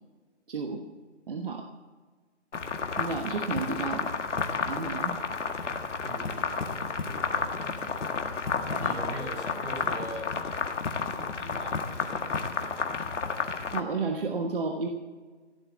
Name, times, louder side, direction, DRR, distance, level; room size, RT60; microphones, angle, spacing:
voice 1, 0.5-0.8 1.3-1.6 3.0-4.1 4.6-5.1 13.7-14.9, right 4 dB, 50° right, 3 dB, 1.3 m, -31 dB
sound 1, 2.5-13.8, left 4 dB, 85° left, 1.8 m, -31 dB
voice 2, 6.0-8.1 8.7-10.3 10.9-12.9, right 1 dB, 70° right, 2 dB, 5.3 m, -42 dB
16.0 x 7.7 x 8.4 m, 1.4 s
hypercardioid pair, 175°, 35 cm